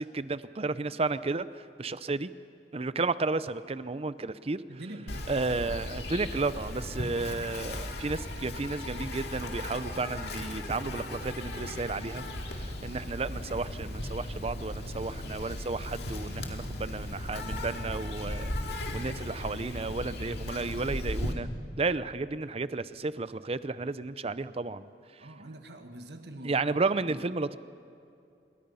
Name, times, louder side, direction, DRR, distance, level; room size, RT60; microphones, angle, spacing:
voice 1, 0.0-2.3 2.7-4.6 5.3-12.2 12.5-18.5 18.9-21.5 21.8-24.8 26.4-27.6, right 3 dB, 35° right, 15 dB, 0.6 m, -32 dB
voice 2, 4.7-5.3 25.2-26.7 27.0-27.2, right 1 dB, 65° right, 5 dB, 1.7 m, -44 dB
Insect, 5.1-21.3, left 1 dB, 65° left, 2.2 m, -37 dB
27.0 x 23.0 x 5.6 m, 2.6 s
head